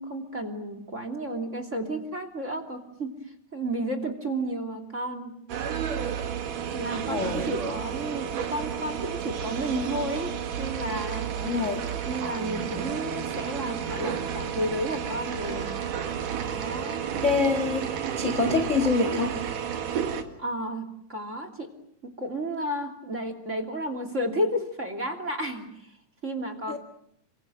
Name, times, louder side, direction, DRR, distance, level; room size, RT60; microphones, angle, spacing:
voice 1, 0.0-3.1 3.5-5.3 6.7-11.3 12.1-15.8 16.4-17.0 20.4-21.7 22.2-25.7 26.2-26.8, right 1 dB, 25° right, 8 dB, 2.9 m, -32 dB
sound 1, 5.5-20.2, right 8 dB, 75° right, 3.5 m, -31 dB
voice 2, 7.1-7.5 11.3-11.8 17.2-17.9 18.2-19.4 26.7-26.8, left 4 dB, 25° left, 8 dB, 1.9 m, -26 dB
29.5 x 25.5 x 7.7 m, 0.72 s
omnidirectional pair, 3.8 m